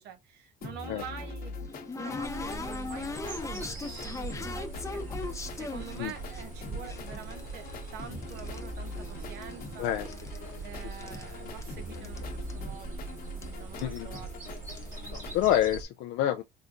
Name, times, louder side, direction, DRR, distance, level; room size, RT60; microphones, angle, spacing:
voice 1, 0.0-9.9 10.6-13.0 13.3-14.3, right 7 dB, 80° right, 0.8 m, -46 dB
sound 1, 0.6-15.4, left 3 dB, 60° left, 1.0 m, -43 dB
sound 2, 0.9-6.4 6.9-8.7 8.9-9.7 9.9-11.3 11.6-11.7 11.9-12.2 12.5-12.6 13.4-13.5 13.8-14.0 14.6-14.9, left 3 dB, 20° left, 0.7 m, -39 dB
sound 3, 2.2-15.8, right 3 dB, 50° right, 2.0 m, -41 dB
voice 2, 9.8-10.1 11.9-12.1 13.8-14.1 15.1-16.4, left 11 dB, 85° left, 0.4 m, -28 dB
3.9 x 3.4 x 2.5 m
cardioid pair, 110°, 17 cm